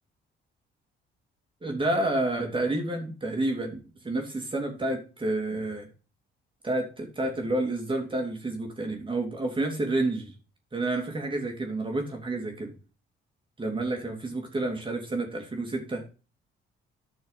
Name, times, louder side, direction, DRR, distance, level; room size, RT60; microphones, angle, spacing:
voice 1, 1.6-5.9 6.6-10.3 10.7-12.7 13.6-16.0, right 2 dB, 25° right, 2 dB, 2.9 m, -29 dB
9.8 x 6.5 x 5.7 m, 0.34 s
cardioid pair, 90°, 20 cm